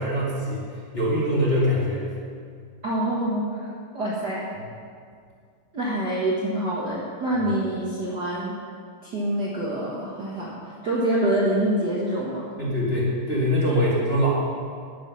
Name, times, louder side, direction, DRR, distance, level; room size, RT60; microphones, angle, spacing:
voice 1, 0.0-2.1 12.6-14.3, equal, 20° left, -8 dB, 1.8 m, -23 dB
voice 2, 2.8-3.7 3.9-4.5 5.7-8.6 9.0-10.6 10.8-12.5, right 1 dB, 75° right, -6 dB, 0.9 m, -26 dB
11.5 x 9.6 x 5.7 m, 2.2 s
omnidirectional pair, 4.4 m